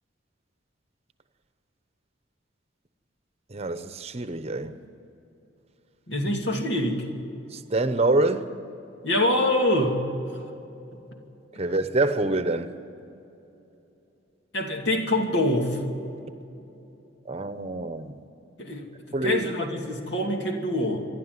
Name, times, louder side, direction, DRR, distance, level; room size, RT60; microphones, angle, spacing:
voice 1, 3.5-4.8 7.5-8.5 11.6-12.7 17.3-18.1 19.1-19.5, right 2 dB, 35° right, 0.9 m, -26 dB
voice 2, 6.1-7.1 9.0-10.0 14.5-15.8 18.6-21.1, left 1 dB, 70° left, 2.7 m, -25 dB
27.0 x 11.5 x 9.6 m
head